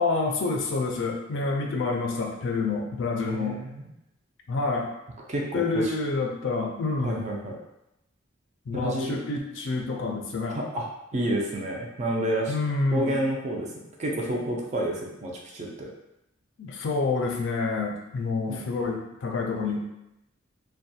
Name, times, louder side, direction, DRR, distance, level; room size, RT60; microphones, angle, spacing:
voice 1, 0.0-3.6 4.5-4.9 5.5-7.2 8.7-10.6 12.5-13.1 16.6-19.8, left 3 dB, 60° left, 1 dB, 0.4 m, -28 dB
voice 2, 3.2-3.8 5.3-5.9 7.0-7.6 8.7-9.2 10.5-10.9 11.1-12.6 12.9-13.7 14.0-15.9 18.5-18.6, right 1 dB, 35° right, -1 dB, 0.4 m, -29 dB
2.4 x 2.2 x 2.7 m, 0.88 s
head